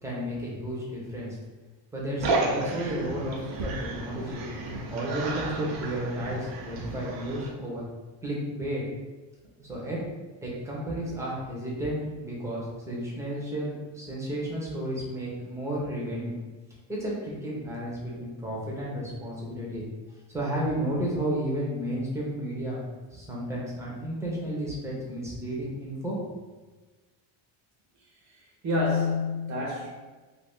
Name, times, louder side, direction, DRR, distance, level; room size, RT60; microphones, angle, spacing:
voice 1, 0.0-1.4 1.9-4.4 4.9-7.8 8.2-8.8 9.6-10.0 10.4-16.3 16.9-19.8 20.3-22.8 23.1-26.2, right 1 dB, 5° right, -5 dB, 0.7 m, -32 dB
sound 1, 2.2-7.5, right 2 dB, 70° right, 0.8 m, -32 dB
voice 2, 28.3-29.9, left 3 dB, 40° right, -4 dB, 0.8 m, -28 dB
2.7 x 2.7 x 3.5 m, 1.3 s
cardioid pair, 150°, 46 cm